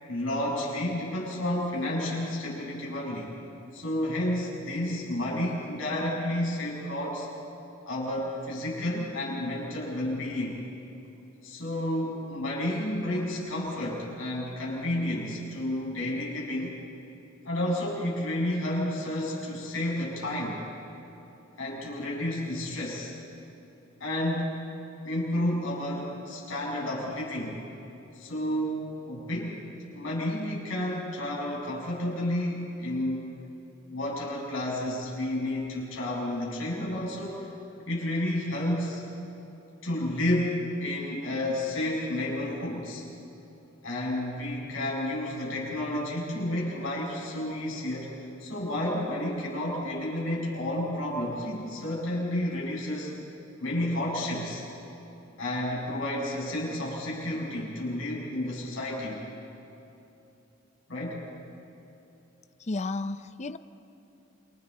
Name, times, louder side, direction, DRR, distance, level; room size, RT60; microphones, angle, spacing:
voice 1, 0.1-3.3 3.7-7.3 7.9-10.6 11.4-16.8 17.5-20.6 21.6-23.1 24.0-24.6 25.0-27.6 28.1-29.6 29.9-33.3 33.9-37.5 37.9-39.0 39.8-43.0 43.8-48.1 48.4-53.1 53.6-54.7 55.4-59.2 60.9-61.3, left 1 dB, 85° left, -4 dB, 7.3 m, -31 dB
voice 2, 62.7-63.6, left 2 dB, 35° left, 12 dB, 0.6 m, -32 dB
29.0 x 26.0 x 4.4 m, 2.9 s
head